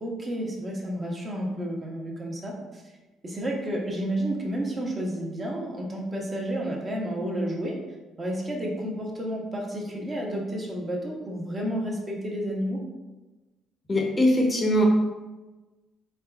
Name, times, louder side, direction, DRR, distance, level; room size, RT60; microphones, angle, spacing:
voice 1, 0.0-2.8 3.2-7.8 8.2-12.8, right 1 dB, 25° right, -1 dB, 0.7 m, -31 dB
voice 2, 13.9-14.8, left 1 dB, 20° left, 0 dB, 0.6 m, -21 dB
3.5 x 3.4 x 2.3 m, 1.2 s
cardioid pair, 115°, 0 cm